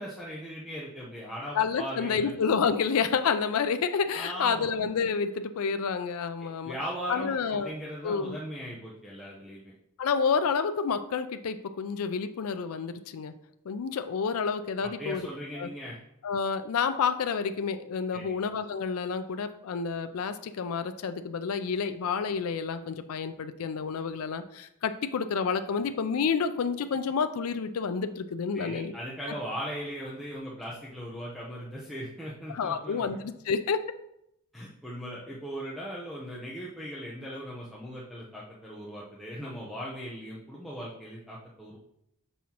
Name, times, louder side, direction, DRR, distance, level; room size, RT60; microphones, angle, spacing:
voice 1, 0.0-2.3 4.1-4.7 6.6-9.7 14.8-16.0 18.1-18.4 28.5-33.2 34.5-41.8, equal, ahead, -6 dB, 0.7 m, -39 dB
voice 2, 1.6-6.7 7.1-7.7 8.0-8.4 10.0-13.3 13.7-15.3 15.6-15.7 16.2-28.9 32.5-33.8, left 6 dB, 75° left, 9 dB, 0.4 m, -29 dB
6.1 x 5.5 x 2.9 m, 0.78 s
head